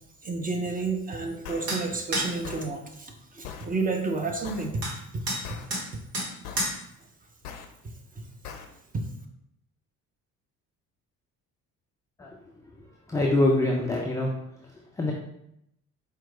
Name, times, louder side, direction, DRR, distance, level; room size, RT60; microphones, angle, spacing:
voice 1, 0.2-4.8 8.9-9.0, right 3 dB, 20° right, 3 dB, 0.7 m, -30 dB
sound 1, 1.5-1.7 2.4-2.7 3.4-3.7 4.4-4.7 5.4-5.7 6.5-6.7 7.5-7.7 8.5-8.7, left 7 dB, 75° left, 0.6 m, -40 dB
sound 2, 1.7-1.8 2.1-2.3 4.8-4.9 5.3-5.4 5.7-5.8 6.1-6.3 6.6-6.8, right 1 dB, 70° right, 1.2 m, -29 dB
voice 2, 13.1-14.3 15.0-15.1, left 1 dB, 10° left, -2 dB, 0.3 m, -24 dB
4.5 x 2.3 x 3.7 m, 0.78 s
figure-of-eight pair, 50°, 46 cm